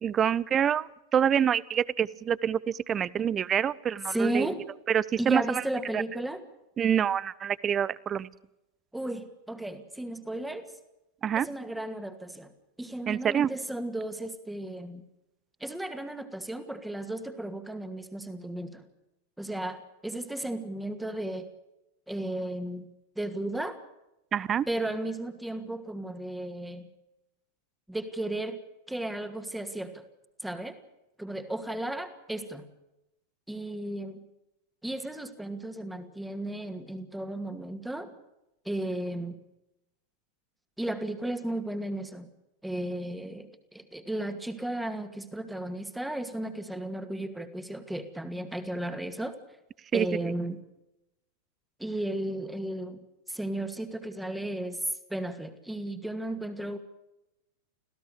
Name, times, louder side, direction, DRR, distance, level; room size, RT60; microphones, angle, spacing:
voice 1, 0.0-4.5 4.9-5.6 5.9-6.0 6.8-8.3 11.2-11.5 13.1-13.5 24.3-24.7 49.9-50.1, right 8 dB, 25° right, 23 dB, 0.7 m, -26 dB
voice 2, 4.1-4.6 5.2-6.4 8.9-10.7 11.4-12.5 12.8-15.0 15.6-18.8 19.4-21.5 22.1-22.9 23.2-23.8 24.7-26.9 27.9-28.6 28.9-30.0 30.4-30.8 31.2-32.7 33.5-34.2 34.8-38.1 38.7-39.4 40.8-42.3 42.6-49.4 49.9-50.6 51.8-53.0 53.3-54.8 55.1-56.8, right 1 dB, 5° right, 8 dB, 2.4 m, -34 dB
26.5 x 16.5 x 6.7 m, 0.92 s
figure-of-eight pair, 90°, 0 cm